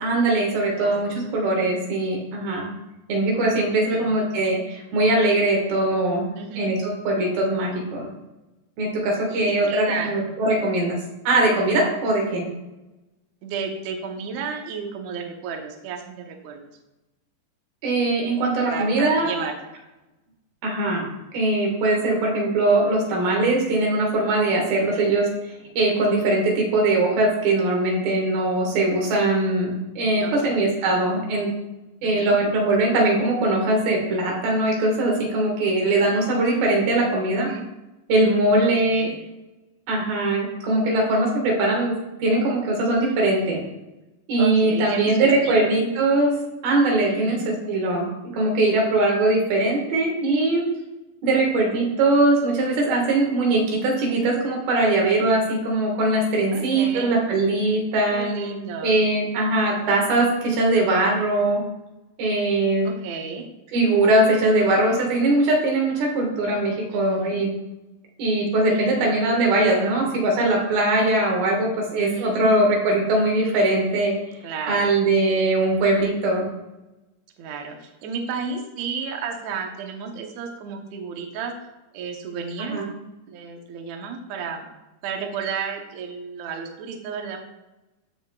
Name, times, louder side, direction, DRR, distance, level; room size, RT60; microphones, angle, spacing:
voice 1, 0.0-2.7 3.1-6.2 6.6-8.1 8.8-11.0 11.3-12.5 17.8-19.3 20.6-21.1 21.3-25.3 25.8-31.5 32.0-37.5 38.1-39.1 39.9-43.6 44.3-46.3 46.6-50.7 51.2-58.3 58.8-61.6 62.2-62.9 63.7-67.5 68.2-74.1 74.7-76.4 82.7-82.9, right 2 dB, 85° right, 0 dB, 3.5 m, -21 dB
voice 2, 0.7-1.3 3.9-4.3 6.4-6.7 9.3-10.2 13.4-16.7 18.6-19.6 24.8-25.1 30.2-30.7 32.0-32.4 37.3-37.6 38.6-39.2 44.4-45.7 47.1-47.5 56.5-57.2 58.1-58.9 62.9-63.5 66.9-67.4 68.7-69.2 69.5-70.1 72.0-72.5 74.4-75.0 77.4-81.5 81.9-84.7 85.0-87.4, right 5 dB, 70° right, 3 dB, 1.8 m, -33 dB
14.5 x 5.2 x 2.3 m, 1.0 s
omnidirectional pair, 4.1 m